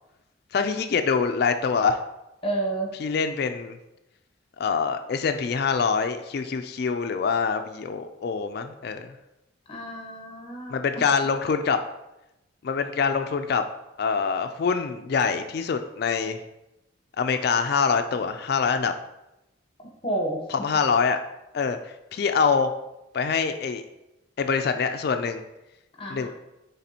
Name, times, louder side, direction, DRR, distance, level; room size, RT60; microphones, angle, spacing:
voice 1, 0.5-2.0 3.0-3.8 4.6-9.1 10.7-11.8 12.6-13.6 14.0-16.4 17.2-18.9 20.5-21.2 21.5-21.8 22.1-22.7 23.1-23.8 24.4-25.4 26.1-26.3, left 5 dB, 55° left, 8 dB, 0.3 m, -25 dB
voice 2, 2.4-2.9 9.7-11.1 20.0-20.4 26.0-26.3, right 2 dB, 30° left, -1 dB, 0.9 m, -30 dB
9.9 x 3.4 x 2.8 m, 0.93 s
head